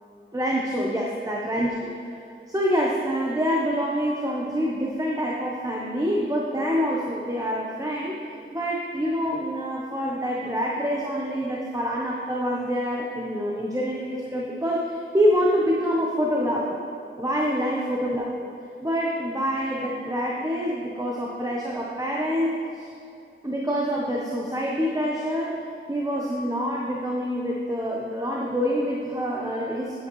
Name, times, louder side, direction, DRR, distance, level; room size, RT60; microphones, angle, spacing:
voice 1, 0.3-1.7 2.1-8.2 8.5-16.8 17.2-18.5 18.8-22.9 23.4-25.6 25.9-30.1, equal, 15° right, -3 dB, 0.8 m, -26 dB
10.0 x 8.1 x 3.1 m, 2.7 s
wide cardioid pair, 80°, 21 cm